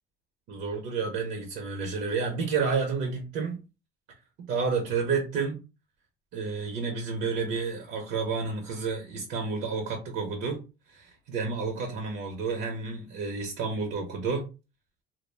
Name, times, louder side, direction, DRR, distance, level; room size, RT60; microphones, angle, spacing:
voice 1, 0.5-3.6 4.5-5.6 6.3-10.6 10.9-14.5, right 5 dB, 80° right, 0.6 m, -30 dB
2.2 x 2.0 x 3.2 m
cardioid pair, 110°, 17 cm